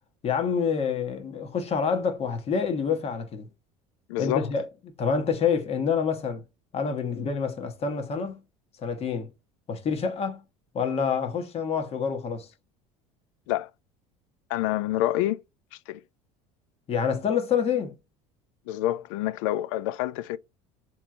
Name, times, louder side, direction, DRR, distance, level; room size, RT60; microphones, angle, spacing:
voice 1, 0.2-3.5 4.2-4.7 5.0-6.4 6.7-8.4 8.8-9.3 9.7-10.4 10.7-12.5 16.9-17.9, left 6 dB, 40° left, 1.2 m, -27 dB
voice 2, 4.1-4.5 13.5-13.7 14.5-15.4 15.9-16.0 18.7-20.4, left 14 dB, 80° left, 0.4 m, -27 dB
3.6 x 3.0 x 4.8 m
supercardioid pair, 100°, 16 cm